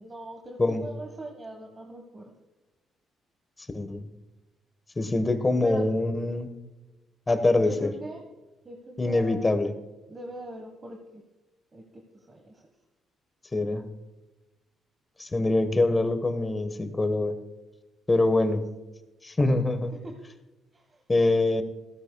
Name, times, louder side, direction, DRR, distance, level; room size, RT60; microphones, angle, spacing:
voice 1, 0.0-2.3 5.6-5.9 7.6-8.2 8.6-9.6 10.1-11.2 11.7-12.6 19.4-19.6 20.0-20.1 20.7-21.0, right 1 dB, 30° right, 2 dB, 1.5 m, -41 dB
voice 2, 3.7-4.1 5.0-6.5 7.3-7.9 9.0-9.7 13.5-13.8 15.2-17.4 18.1-18.6 19.2-19.9 21.1-21.6, left 2 dB, 20° left, 9 dB, 1.3 m, -24 dB
14.5 x 13.5 x 2.3 m, 1.1 s
cardioid pair, 90°, 0 cm